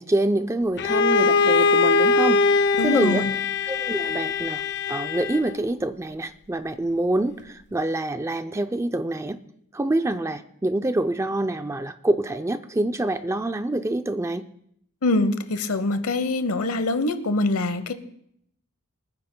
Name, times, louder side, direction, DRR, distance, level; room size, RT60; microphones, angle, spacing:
voice 1, 0.0-2.5 2.8-3.3 3.7-4.6 4.9-9.4 9.7-14.5, right 1 dB, 15° right, 9 dB, 0.4 m, -26 dB
Bowed string instrument, 0.8-5.6, left 4 dB, 50° left, 0.5 m, -21 dB
voice 2, 2.8-3.3 15.0-17.9, left 2 dB, 80° left, 12 dB, 0.9 m, -24 dB
25.0 x 9.7 x 2.2 m, 0.71 s
head